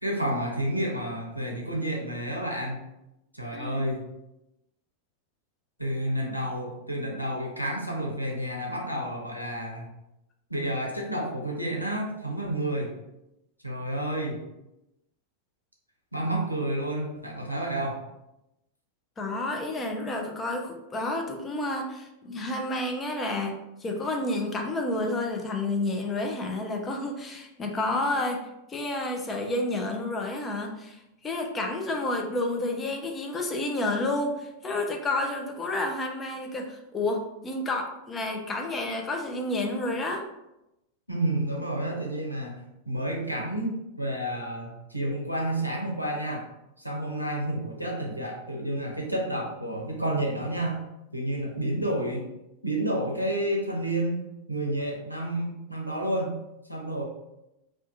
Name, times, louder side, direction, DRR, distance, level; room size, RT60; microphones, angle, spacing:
voice 1, 0.0-2.9 3.3-4.1 5.8-9.9 10.5-12.9 13.6-14.4 16.1-18.0 41.1-46.4 46.8-50.8 51.1-52.3 52.6-54.2 54.5-56.3 56.7-57.0, right 1 dB, 90° right, -2 dB, 0.5 m, -30 dB
voice 2, 3.5-3.8 19.2-23.6 23.8-28.4 28.7-40.3, left 2 dB, 20° left, 2 dB, 0.4 m, -30 dB
2.3 x 2.3 x 2.5 m, 0.90 s
figure-of-eight pair, 90°, 0 cm